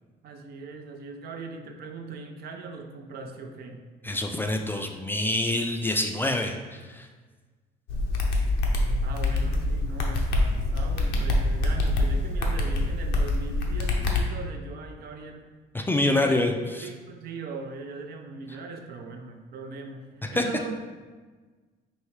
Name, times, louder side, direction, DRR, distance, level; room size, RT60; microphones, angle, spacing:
voice 1, 0.2-3.9 9.0-15.5 16.0-16.5 16.8-20.8, right 4 dB, 65° right, 4 dB, 0.5 m, -39 dB
voice 2, 4.0-7.1 15.7-16.9 20.2-20.4, left 1 dB, 10° left, 4 dB, 0.3 m, -26 dB
sound 1, 7.9-14.2, left 2 dB, 85° left, 0.7 m, -25 dB
4.6 x 2.7 x 3.1 m, 1.4 s
cardioid pair, 110°, 17 cm